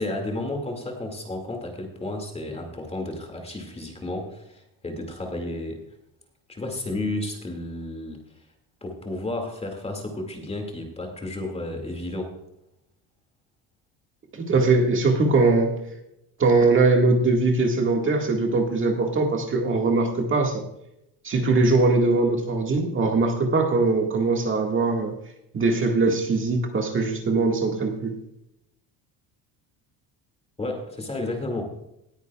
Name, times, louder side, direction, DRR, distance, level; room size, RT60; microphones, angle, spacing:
voice 1, 0.0-5.8 6.5-8.2 8.8-12.3 30.6-31.7, left 2 dB, 15° left, 3 dB, 2.2 m, -32 dB
voice 2, 14.3-15.7 16.4-20.6 21.2-25.1 25.5-28.2, right 3 dB, 30° right, 2 dB, 1.8 m, -21 dB
19.5 x 9.6 x 2.3 m, 0.83 s
cardioid pair, 155°, 40 cm